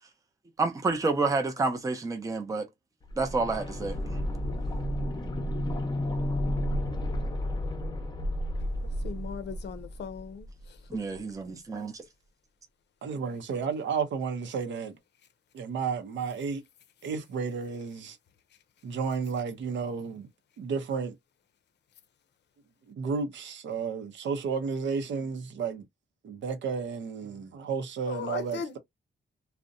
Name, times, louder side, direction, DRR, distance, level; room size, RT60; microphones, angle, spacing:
voice 1, 0.6-2.7 3.2-4.2 10.9-12.0, right 3 dB, 20° right, 0.5 m, -29 dB
sound 1, 3.0-10.8 11.1-11.2, left 1 dB, 25° left, 0.6 m, -32 dB
voice 2, 9.0-10.5 28.1-28.8, left 6 dB, 70° left, 0.5 m, -37 dB
voice 3, 13.0-15.0 15.5-16.6 17.0-18.2 18.8-20.3 20.6-21.1 22.9-25.8 26.2-28.8, right 5 dB, 80° right, 0.6 m, -32 dB
2.6 x 2.1 x 2.4 m
cardioid pair, 115°, 19 cm